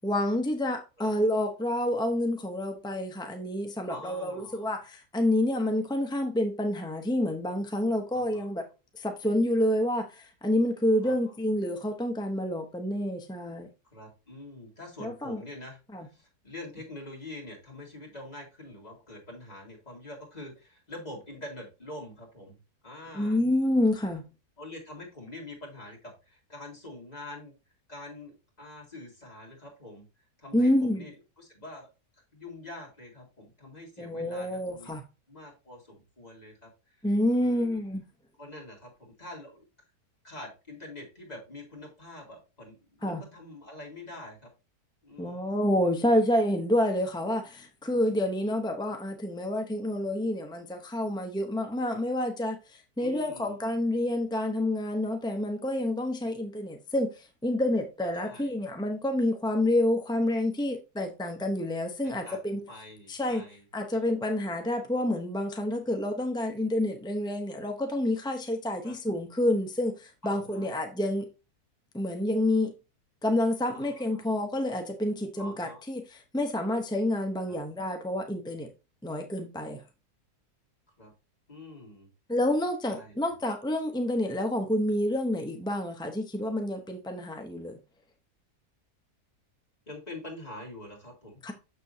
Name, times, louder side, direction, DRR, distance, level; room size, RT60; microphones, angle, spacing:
voice 1, 0.0-8.7 8.9-13.7 15.0-15.4 15.9-16.1 23.1-24.2 30.5-31.1 34.0-35.0 37.0-38.0 43.0-43.2 45.2-62.6 63.1-63.4 63.7-71.3 71.9-72.7 73.2-78.7 79.0-79.8 82.3-87.8 91.4-91.5, left 1 dB, 5° left, 0.4 m, -28 dB
voice 2, 3.9-4.7 8.1-8.5 11.0-11.2 13.9-23.4 24.6-27.5 27.9-30.1 30.4-34.9 35.3-37.0 37.4-37.8 38.4-39.7 40.2-44.5 45.0-45.5 53.0-53.6 58.2-58.5 62.0-63.6 68.8-69.0 70.2-70.7 73.7-74.2 75.4-75.8 77.4-77.6 81.0-81.1 81.5-82.1 82.9-83.1 89.9-91.4, left 1 dB, 25° left, 2.7 m, -45 dB
6.7 x 6.6 x 2.7 m
omnidirectional pair, 1.6 m